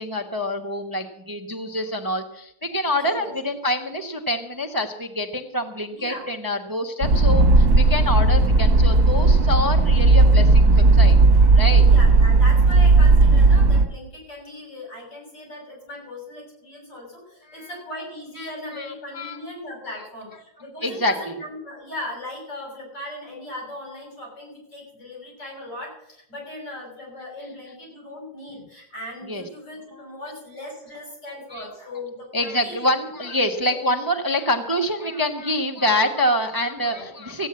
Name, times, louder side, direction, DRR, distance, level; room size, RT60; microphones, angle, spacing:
voice 1, 0.0-11.9 17.5-17.7 18.4-19.4 20.8-21.3 29.3-29.4 30.0-30.1 31.5-31.7 32.3-37.5, left 1 dB, 15° right, 4 dB, 0.9 m, -26 dB
voice 2, 2.9-3.3 5.9-6.3 11.8-32.8 33.2-33.3 33.6-33.8 36.8-37.1, left 1 dB, 80° left, -2 dB, 7.8 m, -38 dB
sound 1, 7.0-13.8, right 3 dB, 50° right, 1.4 m, -15 dB
15.0 x 9.1 x 7.7 m, 0.77 s
omnidirectional pair, 1.8 m